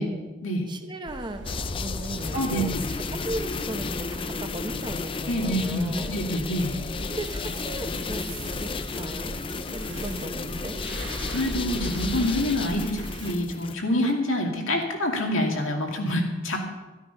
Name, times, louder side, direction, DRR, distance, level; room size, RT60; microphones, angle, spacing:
voice 1, 0.7-1.4 1.8-6.2 7.1-9.4 9.7-10.8, right 1 dB, 25° right, 6 dB, 1.0 m, -37 dB
sound 1, 1.1-13.3, right 2 dB, 60° right, 1.0 m, -40 dB
sound 2, 1.5-13.8, left 4 dB, 25° left, 0.4 m, -33 dB
voice 2, 2.3-2.9 5.3-6.8 11.3-16.6, left 1 dB, 90° left, 1 dB, 2.5 m, -26 dB
12.5 x 12.5 x 5.7 m, 1.2 s
head